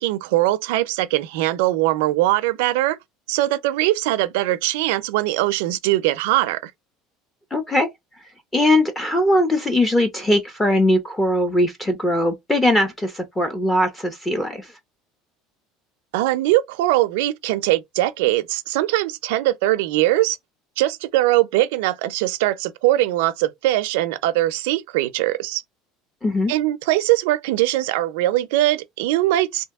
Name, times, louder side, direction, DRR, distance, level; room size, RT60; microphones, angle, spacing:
voice 1, 0.0-3.0 3.3-6.7 16.1-20.4 20.8-25.6 26.5-29.6, right 16 dB, 85° right, 0.4 m, -21 dB
voice 2, 7.5-7.9 8.5-14.7 26.2-26.5, left 1 dB, 10° left, 0.5 m, -20 dB
2.8 x 2.7 x 3.5 m
cardioid pair, 165°, 0 cm